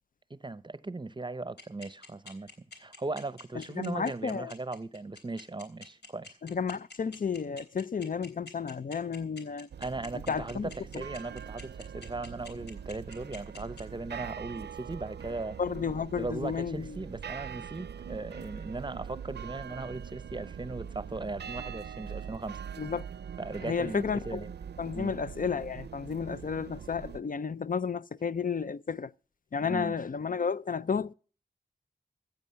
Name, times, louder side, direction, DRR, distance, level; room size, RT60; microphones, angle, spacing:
voice 1, 0.3-2.5 2.8-6.4 9.8-15.6 16.2-22.6 23.4-24.5 24.9-25.2 29.6-29.9, right 3 dB, 25° right, 0.7 m, -38 dB
sound 1, 1.6-13.8, left 3 dB, 75° left, 3.4 m, -47 dB
voice 2, 3.6-4.5 6.4-9.7 10.3-11.0 15.6-17.0 22.8-23.0 23.6-24.4 24.8-29.1 29.5-31.1, left 6 dB, 55° left, 0.5 m, -32 dB
sound 2, 9.7-27.2, right 8 dB, 80° right, 0.5 m, -43 dB
15.0 x 9.0 x 5.7 m
cardioid pair, 60°, 17 cm